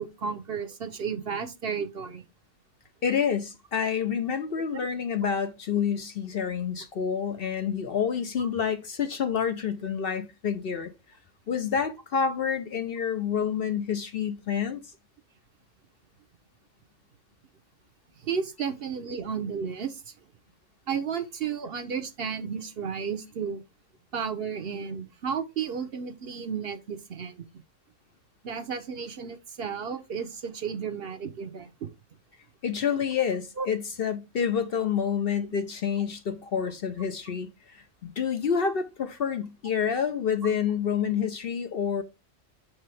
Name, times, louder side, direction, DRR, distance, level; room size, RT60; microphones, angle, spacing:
voice 1, 0.0-2.2 8.4-8.5 18.2-20.1 20.9-23.6 24.1-27.5 28.4-31.7 33.6-33.7, right 6 dB, 55° right, 0.9 m, -33 dB
voice 2, 3.0-10.9 11.5-14.8 32.6-42.0, left 7 dB, 55° left, 0.8 m, -28 dB
6.5 x 4.8 x 3.2 m
omnidirectional pair, 1.3 m